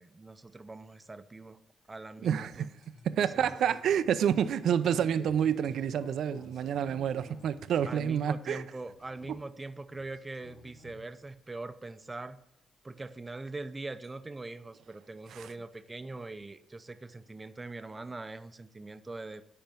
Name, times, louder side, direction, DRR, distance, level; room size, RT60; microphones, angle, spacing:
voice 1, 0.0-1.6 1.9-2.7 3.3-3.6 7.9-12.4 12.8-19.4, right 2 dB, 25° right, 0.6 m, -42 dB
voice 2, 2.2-2.7 3.0-8.6 15.3-15.5, right 8 dB, 75° right, 0.4 m, -28 dB
sound 1, 2.5-8.3 8.6-9.6 9.9-11.1 12.1-12.2 13.4-13.5 14.0-14.1, left 2 dB, 80° left, 2.0 m, -52 dB
10.5 x 4.4 x 7.5 m
cardioid pair, 80°, 0 cm